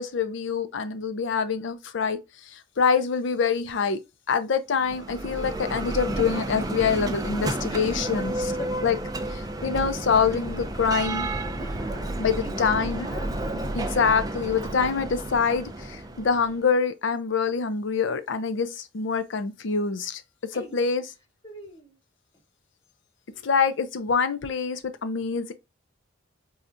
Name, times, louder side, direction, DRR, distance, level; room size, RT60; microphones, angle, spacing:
voice 1, 0.0-2.2 2.5-4.0 4.3-8.5 8.8-9.0 9.3-11.3 12.2-13.1 13.7-20.2 20.5-21.0 23.4-25.5, left 5 dB, 65° left, 0.5 m, -25 dB
Bell, 4.8-16.6, right 1 dB, 20° right, 0.3 m, -31 dB
voice 2, 7.7-8.3 8.6-8.8 11.6-13.4 20.5-20.9 21.4-22.0, equal, 20° left, 1.1 m, -42 dB
4.2 x 2.4 x 2.5 m
head